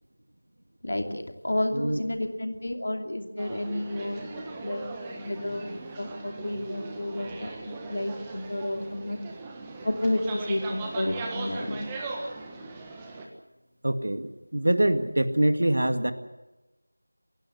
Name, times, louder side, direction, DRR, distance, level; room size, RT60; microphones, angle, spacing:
voice 1, 0.8-5.7 6.0-9.2 9.8-11.9, left 1 dB, 50° left, 5 dB, 2.7 m, -31 dB
sound 1, 3.4-13.3, right 3 dB, 10° right, 1.4 m, -39 dB
voice 2, 13.8-16.1, right 1 dB, 55° right, 9 dB, 1.9 m, -24 dB
28.0 x 16.0 x 7.9 m, 1.1 s
figure-of-eight pair, 170°, 0 cm